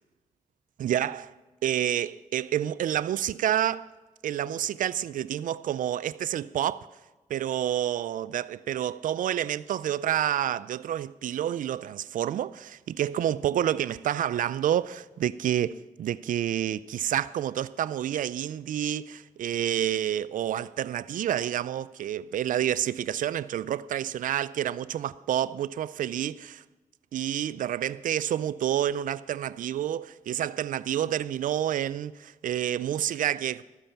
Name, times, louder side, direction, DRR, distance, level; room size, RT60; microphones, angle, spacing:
voice 1, 0.8-1.2 1.6-3.9 4.2-6.9 7.3-26.6 27.1-33.6, right 11 dB, 85° right, 0.4 m, -29 dB
20.0 x 8.9 x 5.8 m
cardioid pair, 50°, 13 cm